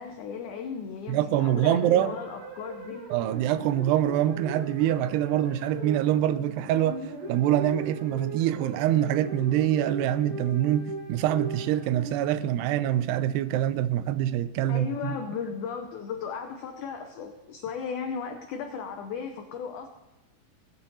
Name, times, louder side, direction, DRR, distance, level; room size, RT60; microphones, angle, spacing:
voice 1, 0.0-3.0 14.7-19.9, left 6 dB, 90° left, 1.7 m, -36 dB
voice 2, 1.1-2.2 3.1-15.2, right 12 dB, 85° right, 2.7 m, -25 dB
sound 1, 1.3-12.7, right 3 dB, 60° right, 4.3 m, -40 dB
17.5 x 8.7 x 4.1 m
omnidirectional pair, 4.7 m